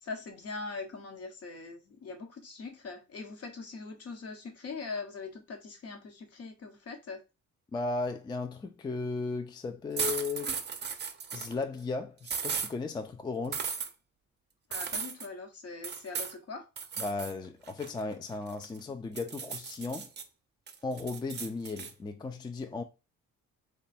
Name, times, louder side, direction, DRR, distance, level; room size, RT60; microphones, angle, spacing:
voice 1, 0.0-7.2 14.7-16.7, left 4 dB, 55° left, 1.1 m, -42 dB
voice 2, 7.7-10.6 11.3-13.7 17.0-20.1 20.8-22.8, left 3 dB, 15° left, 0.3 m, -35 dB
sound 1, 10.0-11.5 12.2-12.7 13.5-13.9 14.7-15.3 15.8-16.4 16.8-17.3 17.7-18.8 19.2-20.2 20.7-21.9, right 6 dB, 35° right, 0.6 m, -36 dB
3.2 x 2.3 x 4.1 m
cardioid pair, 90°, 30 cm